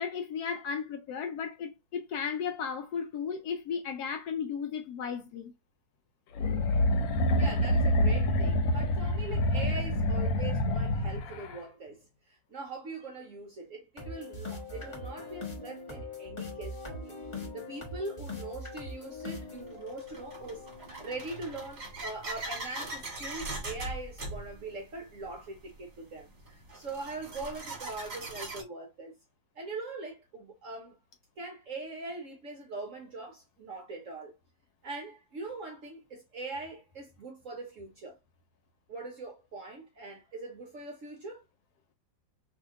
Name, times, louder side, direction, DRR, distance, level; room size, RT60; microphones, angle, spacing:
voice 1, 0.0-5.5, left 6 dB, 70° left, 0.9 m, -35 dB
sound 1, 6.4-11.6, left 1 dB, 90° left, 1.4 m, -27 dB
voice 2, 7.4-17.1 17.5-20.7 21.0-29.1 29.5-30.9 31.4-34.3 34.8-38.2 38.9-41.4, right 3 dB, 65° right, 0.8 m, -42 dB
sound 2, 14.0-21.9, left 3 dB, 30° left, 0.5 m, -42 dB
sound 3, 18.3-18.4 19.2-28.6, right 2 dB, 40° right, 1.1 m, -41 dB
2.8 x 2.7 x 3.5 m
omnidirectional pair, 2.0 m